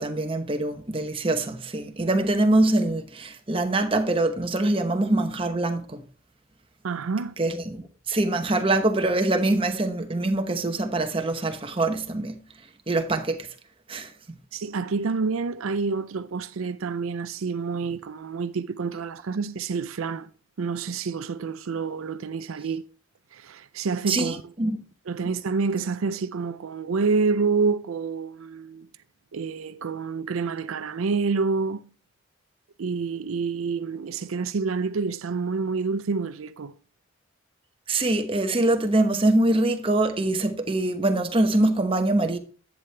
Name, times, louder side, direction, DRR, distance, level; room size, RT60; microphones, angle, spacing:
voice 1, 0.0-6.0 7.4-12.4 12.9-13.5 13.9-14.4 24.1-24.8 25.2-25.3 37.9-42.4, right 2 dB, 25° right, 1.0 m, -24 dB
voice 2, 6.8-7.3 14.5-20.3 20.6-22.8 23.3-24.4 25.1-28.9 29.3-31.9 32.8-36.7, right 4 dB, 80° right, 0.5 m, -28 dB
11.0 x 8.3 x 3.3 m
head